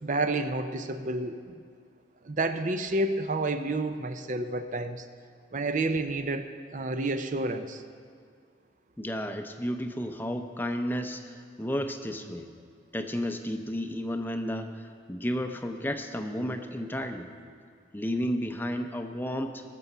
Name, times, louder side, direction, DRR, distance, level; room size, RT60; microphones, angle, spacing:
voice 1, 0.0-1.5 2.2-5.1 5.5-7.8, right 2 dB, 45° right, 9 dB, 0.6 m, -30 dB
voice 2, 9.0-12.5 12.9-17.3 17.9-19.6, equal, 10° left, 6 dB, 0.6 m, -32 dB
20.5 x 6.9 x 5.5 m, 2.1 s
head